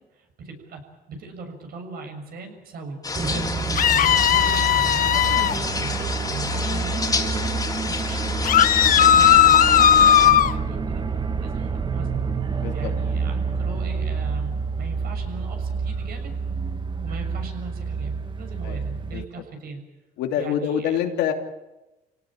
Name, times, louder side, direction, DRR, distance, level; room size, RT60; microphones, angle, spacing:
voice 1, 0.1-0.8 1.1-7.6 7.8-12.3 12.7-16.4 17.0-19.8 20.4-21.0, right 3 dB, 65° right, 5 dB, 6.8 m, -39 dB
sound 1, 3.0-10.3, left 3 dB, 20° left, 3.6 m, -29 dB
sound 2, 3.1-19.3, right 5 dB, 30° right, 1.4 m, -28 dB
sound 3, 3.8-5.6 8.4-10.5, left 10 dB, 55° left, 1.0 m, -16 dB
voice 2, 12.6-12.9 18.6-18.8 19.1-19.2 20.2-21.3, left 9 dB, 85° left, 4 dB, 2.9 m, -26 dB
28.0 x 18.0 x 8.9 m, 1.0 s
cardioid pair, 110°, 17 cm